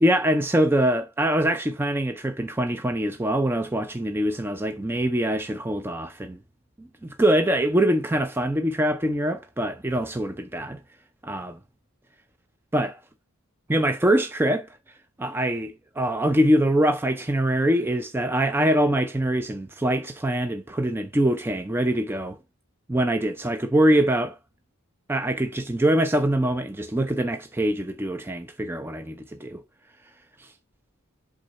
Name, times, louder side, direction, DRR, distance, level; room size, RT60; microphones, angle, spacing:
voice 1, 0.0-6.4 6.8-10.8 11.2-11.6 12.7-13.0 13.7-14.7 15.2-22.4 22.9-24.4 25.1-29.6 30.4-30.5, right 1 dB, 10° right, 0.4 m, -24 dB
8.0 x 3.7 x 4.1 m
head